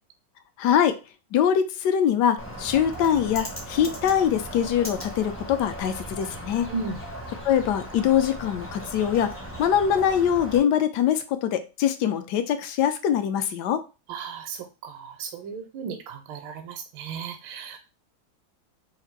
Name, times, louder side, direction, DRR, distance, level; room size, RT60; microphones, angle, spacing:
voice 1, 0.6-1.0 1.3-6.7 7.4-13.8, left 9 dB, 75° left, 9 dB, 1.0 m, -23 dB
Bird, 2.4-10.6, equal, 20° left, 0.3 m, -37 dB
voice 2, 14.1-17.8, right 5 dB, 80° right, 6 dB, 1.3 m, -35 dB
3.5 x 2.4 x 4.5 m, 0.30 s
omnidirectional pair, 2.2 m